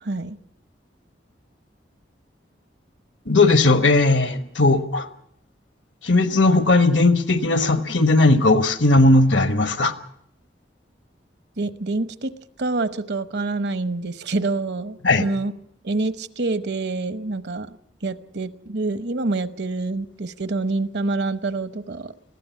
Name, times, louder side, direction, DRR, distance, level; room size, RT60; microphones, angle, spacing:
voice 1, 0.0-0.4 11.6-12.3 12.6-15.5 15.8-17.8 18.0-22.1, right 3 dB, 65° right, 12 dB, 1.0 m, -26 dB
voice 2, 3.3-5.1 6.0-9.9 15.0-15.3, left 2 dB, 80° left, 9 dB, 1.4 m, -17 dB
21.0 x 15.0 x 8.4 m, 0.72 s
head